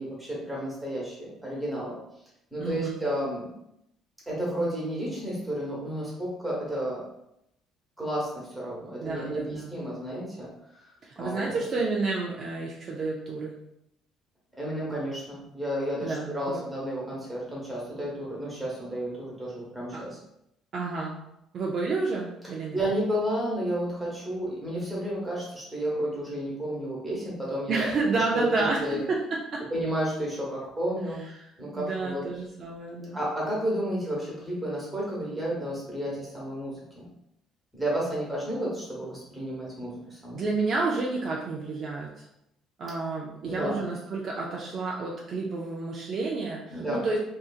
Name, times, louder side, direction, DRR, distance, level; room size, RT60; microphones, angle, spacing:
voice 1, 0.0-1.9 2.5-3.5 4.3-7.0 8.0-10.5 10.8-10.9 11.2-11.6 14.6-20.2 22.7-29.0 29.7-32.2 33.1-37.0 37.7-40.4 43.4-43.8 46.7-47.0, equal, 5° right, -6 dB, 1.1 m, -32 dB
voice 2, 2.6-3.0 9.0-9.7 11.0-13.5 16.0-16.6 19.9-20.0 20.7-21.1 21.5-22.8 27.7-29.6 31.4-31.5 31.8-33.2 40.3-42.2 42.8-47.2, right 3 dB, 45° right, -2 dB, 0.4 m, -30 dB
2.7 x 2.5 x 2.4 m, 0.82 s
cardioid pair, 130°, 0 cm